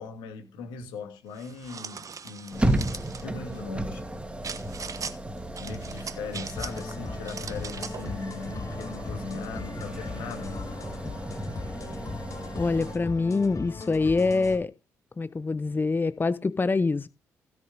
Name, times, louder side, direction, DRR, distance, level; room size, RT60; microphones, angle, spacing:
voice 1, 0.0-4.0 5.6-10.7, left 4 dB, 75° left, 2.9 m, -39 dB
sound 1, 1.4-3.2 4.4-5.2 5.6-6.9 7.2-8.1, right 6 dB, 45° right, 1.2 m, -39 dB
sound 2, 2.5-13.0, right 1 dB, 15° right, 2.6 m, -34 dB
sound 3, 6.6-14.6, left 4 dB, 45° left, 2.7 m, -39 dB
voice 2, 12.6-14.7 15.2-17.1, left 3 dB, 25° left, 0.6 m, -25 dB
16.0 x 6.9 x 3.8 m
hypercardioid pair, 40°, 8 cm